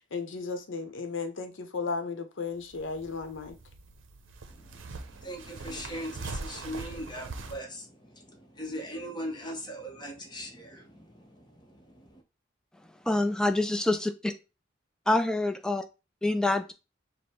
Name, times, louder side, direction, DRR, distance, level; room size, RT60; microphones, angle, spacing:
voice 1, 0.1-3.5, left 4 dB, 75° left, 0.7 m, -35 dB
sound 1, 2.5-7.6, right 3 dB, 75° right, 0.6 m, -42 dB
voice 2, 4.5-12.2, equal, 20° left, 0.9 m, -40 dB
voice 3, 13.0-14.1 15.1-15.8 16.2-16.7, left 2 dB, 5° left, 0.3 m, -26 dB
5.1 x 2.1 x 4.3 m
head